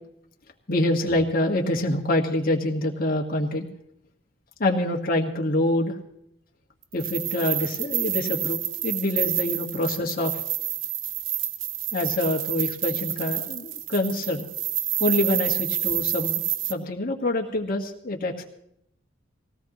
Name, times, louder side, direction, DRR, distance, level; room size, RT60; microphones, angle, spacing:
voice 1, 0.7-3.7 4.6-6.0 6.9-10.3 11.9-14.5 15.0-16.4 16.7-18.4, left 1 dB, 50° left, 1 dB, 1.6 m, -26 dB
sound 1, 6.9-16.7, right 12 dB, 75° right, 0.9 m, -28 dB
20.0 x 17.0 x 3.1 m, 0.74 s
head